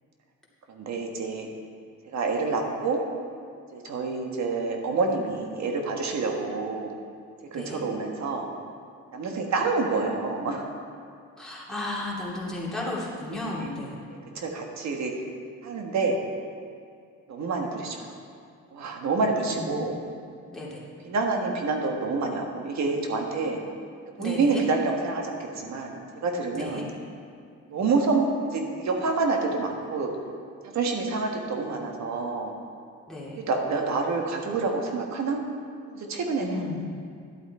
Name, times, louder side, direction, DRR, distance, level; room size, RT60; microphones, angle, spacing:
voice 1, 0.7-1.5 2.1-3.0 3.7-6.9 7.5-8.5 9.1-10.7 13.5-13.7 14.1-15.1 15.6-16.2 17.3-18.1 18.7-20.0 21.0-23.6 24.2-26.0 26.2-26.9 27.7-30.1 30.7-32.5 33.3-35.4 35.9-36.7, right 3 dB, 65° right, 2 dB, 1.5 m, -27 dB
voice 2, 11.4-13.9 19.4-19.7 20.5-20.8 24.2-24.6 26.5-26.9 33.1-33.4 36.4-36.8, left 2 dB, ahead, -7 dB, 2.9 m, -34 dB
11.5 x 8.2 x 4.4 m, 2.3 s
cardioid pair, 90°, 30 cm